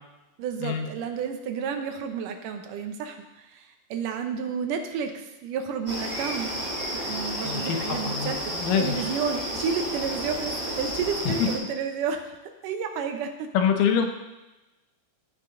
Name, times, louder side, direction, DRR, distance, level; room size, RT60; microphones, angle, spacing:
voice 1, 0.4-6.5 6.9-13.5, right 6 dB, 80° right, 5 dB, 2.5 m, -31 dB
sound 1, 5.9-11.6, equal, 10° right, 3.0 m, -32 dB
voice 2, 7.4-9.0 11.3-11.5 13.5-14.1, left 8 dB, 85° left, 4 dB, 2.6 m, -25 dB
15.5 x 5.8 x 3.8 m, 1.0 s
omnidirectional pair, 3.7 m